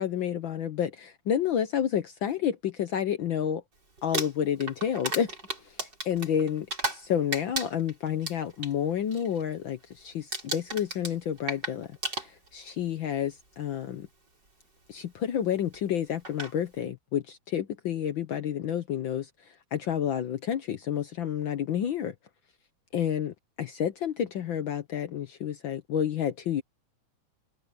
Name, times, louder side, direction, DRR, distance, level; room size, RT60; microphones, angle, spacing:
voice 1, 0.0-3.6 4.0-5.3 5.6-6.7 6.9-14.1 14.9-22.1 22.9-26.6, left 9 dB, 80° left, 1.1 m, -30 dB
Crumpling crinkling, 4.0-7.1 7.3-8.7 9.1-9.4 9.7-10.0 10.3-12.7 13.6-13.7 15.7-15.8 16.2-16.5, right 2 dB, 35° right, 6.7 m, -34 dB
omnidirectional pair, 3.3 m